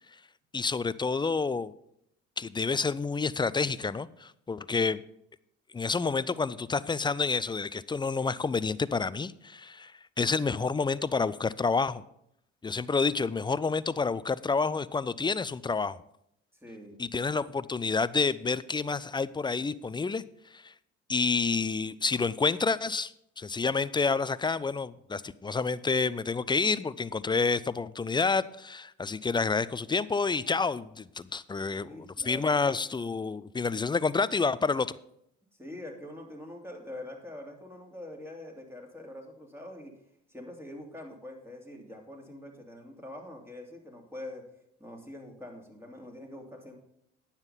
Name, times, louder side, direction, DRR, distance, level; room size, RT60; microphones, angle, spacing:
voice 1, 0.5-1.7 2.4-5.0 5.7-9.9 10.2-12.0 12.6-16.0 17.0-20.2 20.5-20.7 21.1-23.1 23.4-34.9, left 4 dB, 15° left, 18 dB, 0.4 m, -29 dB
voice 2, 16.6-17.0 31.7-32.8 35.6-39.9 40.3-44.4 44.8-46.8, left 1 dB, 10° right, 1 dB, 2.9 m, -44 dB
9.6 x 7.3 x 5.6 m, 0.76 s
supercardioid pair, 65°, 31 cm